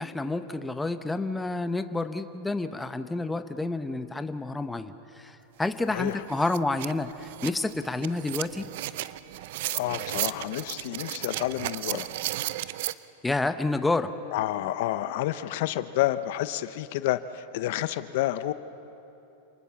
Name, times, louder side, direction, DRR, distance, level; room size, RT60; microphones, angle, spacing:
voice 1, 0.0-8.7 13.2-14.1, left 2 dB, 10° left, 10 dB, 0.8 m, -29 dB
sound 1, 5.6-5.7 6.1-12.9, right 15 dB, 65° right, 0.6 m, -34 dB
voice 2, 5.9-6.2 9.7-12.1 14.3-18.5, left 14 dB, 65° left, 13 dB, 0.7 m, -29 dB
27.5 x 19.5 x 7.0 m, 3.0 s
supercardioid pair, 130°, 0 cm